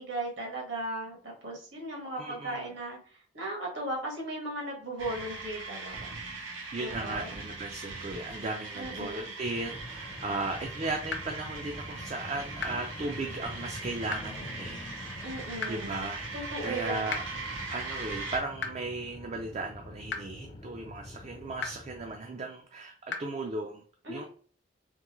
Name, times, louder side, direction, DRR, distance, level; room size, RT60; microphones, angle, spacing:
voice 1, 0.0-3.0 3.3-6.2 6.8-7.3 8.7-9.3 15.2-16.0 16.3-17.1 24.0-24.3, right 1 dB, 70° right, -2 dB, 1.6 m, -37 dB
voice 2, 2.2-2.7 6.4-14.9 15.6-16.2 16.6-24.3, right 2 dB, 35° right, 3 dB, 0.4 m, -36 dB
sound 1, 5.0-18.4, right 3 dB, 90° right, 1.0 m, -40 dB
sound 2, 9.4-22.2, left 1 dB, 25° left, 0.4 m, -46 dB
sound 3, 11.1-11.2 12.6-12.7 14.1-14.2 15.6-15.7 17.1-17.2 18.6-18.7 20.1-20.2 21.6-21.7 23.1-23.2, left 5 dB, 65° left, 0.7 m, -32 dB
3.6 x 3.0 x 3.1 m, 0.44 s
head